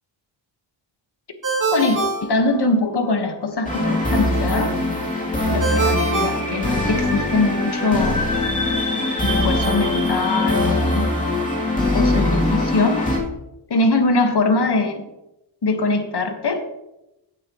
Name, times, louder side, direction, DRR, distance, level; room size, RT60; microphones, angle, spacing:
Ringtone, 1.4-3.1 5.6-7.3, right 3 dB, 40° right, 2.5 m, -25 dB
voice 1, 1.7-4.7 5.5-8.3 9.2-11.1 11.9-13.0 13.7-15.0 15.6-16.6, left 3 dB, 55° left, 5 dB, 1.6 m, -22 dB
sound 1, 3.6-13.2, left 2 dB, 15° left, 3.0 m, -21 dB
16.0 x 8.7 x 3.1 m, 0.92 s
wide cardioid pair, 150°, 48 cm